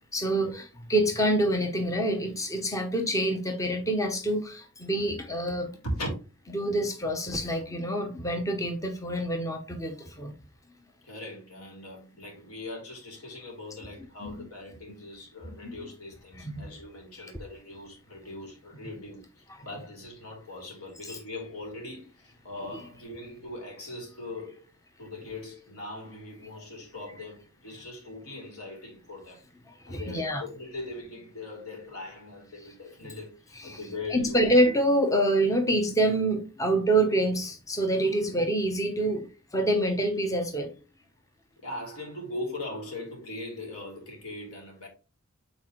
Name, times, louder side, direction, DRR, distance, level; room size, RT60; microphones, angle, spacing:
voice 1, 0.1-5.7 6.5-10.3 14.2-14.5 15.4-15.9 16.4-16.7 17.2-17.3 21.1-21.2 29.9-30.4 33.0-33.1 33.6-33.8 34.1-39.3 39.5-40.7, right 1 dB, 15° left, 0.8 m, -26 dB
voice 2, 11.0-24.7 25.0-29.5 29.9-34.4 41.6-44.9, left 2 dB, 85° left, 3.2 m, -40 dB
8.3 x 4.3 x 3.1 m
head